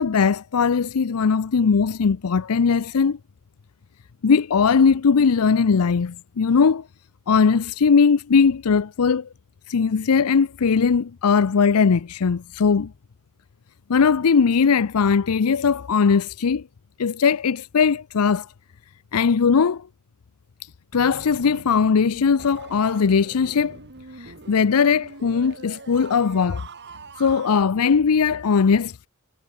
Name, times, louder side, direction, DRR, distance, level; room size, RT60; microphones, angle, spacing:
voice 1, 0.0-3.2 4.2-6.8 7.3-9.3 9.7-12.9 13.9-16.7 17.0-18.5 19.1-19.9 20.9-23.8 24.2-26.7 27.2-29.1, left 5 dB, 75° left, 0.5 m, -19 dB
sound 1, 20.9-27.6, right 4 dB, 50° right, 2.6 m, -43 dB
head